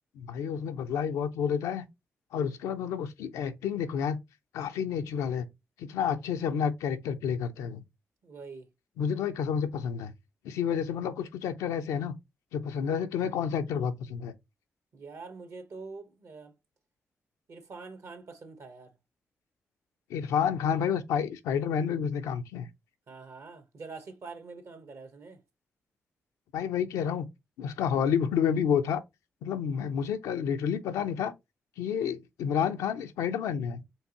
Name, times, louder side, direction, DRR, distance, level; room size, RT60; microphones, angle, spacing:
voice 1, 0.2-1.9 2.3-4.2 4.5-5.5 5.8-7.8 9.0-10.1 10.4-12.1 12.5-14.3 20.1-22.7 26.5-27.3 27.6-29.0 29.4-31.3 31.8-33.8, left 7 dB, 85° left, 0.4 m, -30 dB
voice 2, 8.2-8.7 14.9-16.5 17.5-18.9 23.1-25.4, right 4 dB, 65° right, 1.1 m, -45 dB
4.5 x 3.1 x 2.9 m
supercardioid pair, 45°, 5 cm